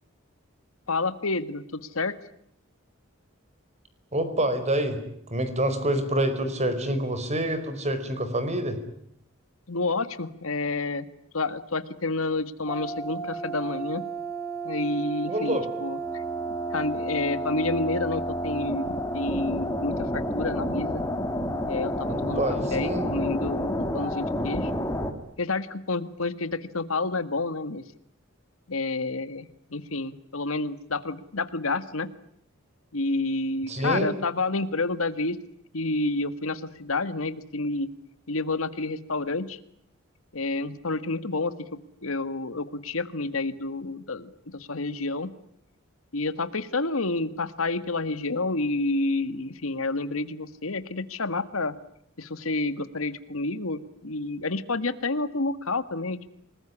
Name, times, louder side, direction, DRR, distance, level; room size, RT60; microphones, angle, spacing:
voice 1, 0.9-2.2 9.7-11.0 11.3-14.0 14.6-16.2 16.7-21.0 21.7-22.4 22.7-24.7 25.4-27.8 28.7-32.1 32.9-35.4 35.7-37.9 38.3-39.6 40.3-45.3 46.1-51.7 52.2-56.3, left 3 dB, 85° left, 13 dB, 1.7 m, -29 dB
voice 2, 4.1-5.0 5.3-8.8 15.3-15.6 22.1-23.1 33.7-34.1, right 1 dB, 35° right, 10 dB, 4.8 m, -27 dB
sound 1, 12.7-25.1, equal, 15° left, 3.0 m, -30 dB
27.5 x 20.5 x 10.0 m, 0.71 s
head